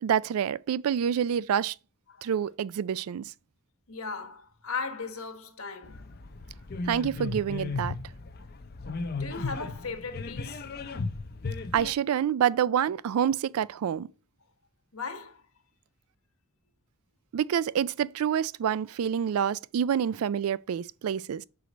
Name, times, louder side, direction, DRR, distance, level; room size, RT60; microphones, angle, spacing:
voice 1, 0.0-1.8 2.2-3.3 6.9-8.0 11.7-14.1 17.3-21.4, right 8 dB, 80° right, 0.3 m, -27 dB
voice 2, 3.9-6.0 8.4-8.5 9.2-10.6 14.9-15.4, left 4 dB, 75° left, 1.3 m, -37 dB
sound 1, 5.8-11.9, left 3 dB, 45° left, 0.6 m, -35 dB
6.5 x 4.8 x 5.0 m
head